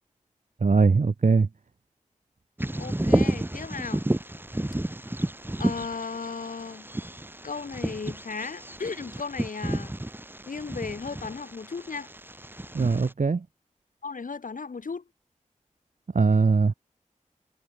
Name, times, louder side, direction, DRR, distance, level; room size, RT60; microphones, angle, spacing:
voice 1, 0.6-1.5 12.7-13.4 16.1-16.7, right 4 dB, 70° right, 1.4 m, -21 dB
Bird vocalization bird call bird song, 2.6-13.1, right 1 dB, 15° right, 1.7 m, -31 dB
voice 2, 2.7-4.0 5.6-6.9 7.4-9.9 10.5-12.1 14.0-15.0, left 4 dB, 90° left, 2.8 m, -35 dB
wide cardioid pair, 60°, 13 cm